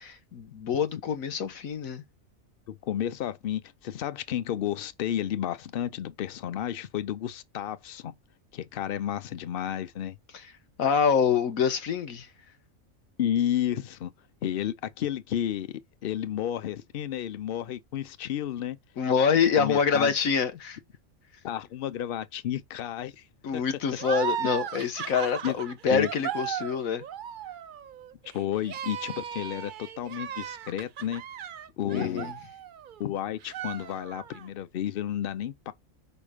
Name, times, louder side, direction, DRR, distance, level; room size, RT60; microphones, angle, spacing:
voice 1, 0.0-2.0 10.8-12.3 19.0-20.8 23.4-27.0 31.9-32.3, left 6 dB, 85° left, 1.5 m, -26 dB
voice 2, 2.7-8.1 8.5-10.2 13.2-14.1 14.4-18.8 19.6-20.1 21.4-23.2 23.5-23.6 25.4-25.5 25.9-26.1 28.3-31.2 31.8-32.3 33.0-35.7, left 11 dB, 55° left, 0.7 m, -31 dB
sound 1, 24.0-33.1 33.4-34.5, right 9 dB, 65° right, 0.5 m, -36 dB
5.1 x 4.8 x 5.0 m
omnidirectional pair, 1.4 m